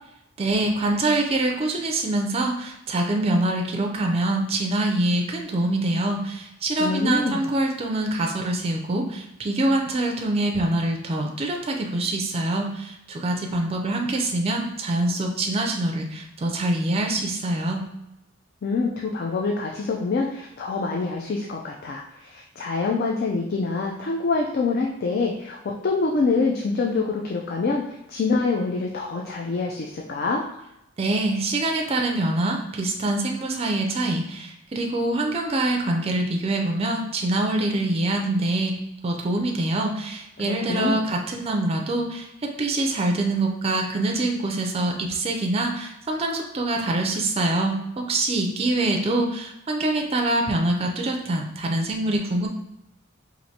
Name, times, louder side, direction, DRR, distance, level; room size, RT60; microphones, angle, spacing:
voice 1, 0.4-17.8 31.0-38.7 39.0-42.3 42.6-52.5, right 2 dB, 30° right, 2 dB, 0.4 m, -25 dB
voice 2, 6.8-7.4 18.6-25.6 25.8-27.8 28.1-30.4 40.4-41.0, left 3 dB, 50° left, 0 dB, 0.4 m, -25 dB
4.4 x 2.5 x 2.8 m, 0.88 s
head